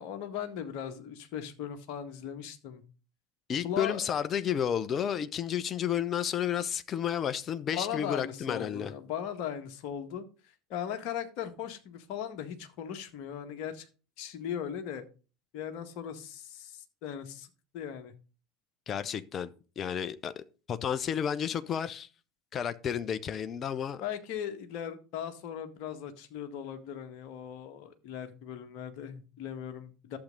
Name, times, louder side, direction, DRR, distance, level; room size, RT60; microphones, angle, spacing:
voice 1, 0.0-2.8 3.6-4.0 7.7-13.9 14.2-15.0 15.5-18.1 24.0-30.2, left 9 dB, 55° left, 1.7 m, -38 dB
voice 2, 3.5-8.9 18.9-22.1 22.5-24.0, left 8 dB, 35° left, 0.9 m, -32 dB
11.5 x 7.6 x 4.0 m
figure-of-eight pair, 75°, 0 cm